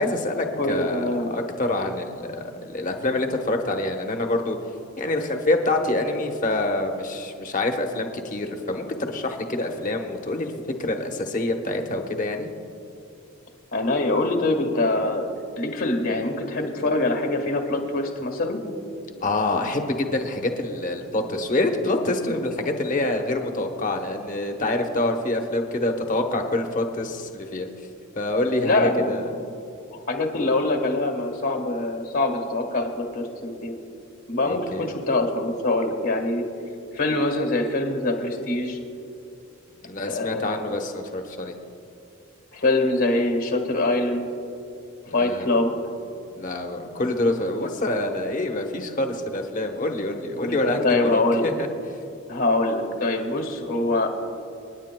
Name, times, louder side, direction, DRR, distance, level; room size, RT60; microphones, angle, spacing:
voice 1, 0.0-4.6 5.0-10.5 10.8-12.5 19.2-27.7 28.2-29.3 34.4-34.9 39.8-41.6 45.1-45.5 46.3-51.7, left 2 dB, 40° left, 3 dB, 1.0 m, -26 dB
voice 2, 0.6-1.3 13.7-15.2 15.6-18.6 28.6-29.5 30.1-33.7 34.3-36.4 36.9-38.8 40.1-40.7 42.5-44.3 45.1-45.7 50.4-50.6 50.8-51.5 52.3-54.1, left 2 dB, 70° left, 3 dB, 1.6 m, -24 dB
27.5 x 10.0 x 2.2 m, 2.7 s
head